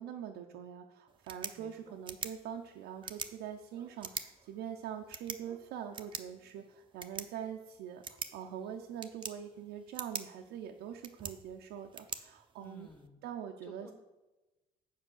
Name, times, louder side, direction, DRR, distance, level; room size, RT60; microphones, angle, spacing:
voice 1, 0.0-12.9 13.2-13.9, right 9 dB, 90° right, 1 dB, 0.7 m, -44 dB
sound 1, 1.1-13.1, right 6 dB, 30° right, 0.6 m, -46 dB
voice 2, 1.5-1.9 12.6-13.2 13.6-13.9, left 1 dB, 10° left, 1 dB, 1.4 m, -54 dB
7.6 x 5.4 x 6.4 m, 1.1 s
cardioid pair, 110°, 17 cm